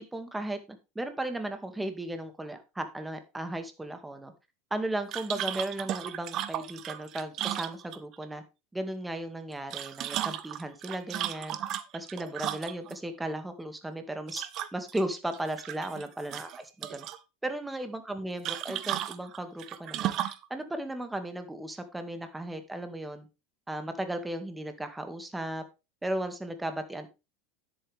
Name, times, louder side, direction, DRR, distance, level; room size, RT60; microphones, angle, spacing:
voice 1, 0.0-4.3 4.7-8.4 8.7-11.6 11.9-14.5 14.7-16.5 16.9-17.1 17.4-23.3 23.7-25.6 26.0-27.1, right 1 dB, 10° right, 8 dB, 2.2 m, -35 dB
sound 1, 5.1-8.2 9.5-13.0 14.3-15.0 15.3-16.0 16.3-17.2 18.4-20.5, right 12 dB, 50° right, 1.1 m, -35 dB
10.0 x 8.7 x 3.5 m, 0.27 s
hypercardioid pair, 95°, 0 cm